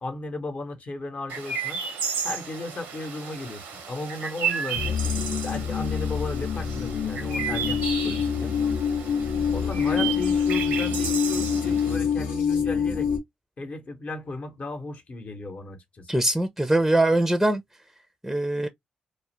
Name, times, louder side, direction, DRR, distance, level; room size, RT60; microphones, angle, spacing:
voice 1, 0.0-1.8 2.2-5.0 5.4-8.5 9.5-13.1 13.6-16.1, left 2 dB, 50° left, 0.8 m, -35 dB
Chirp tweet, 1.3-12.0, right 6 dB, 90° right, 0.7 m, -33 dB
sound 1, 4.7-13.2, left 7 dB, 85° left, 0.7 m, -26 dB
voice 2, 16.1-17.6 18.2-18.7, right 1 dB, 5° right, 0.5 m, -22 dB
2.4 x 2.0 x 2.9 m
hypercardioid pair, 45°, 3 cm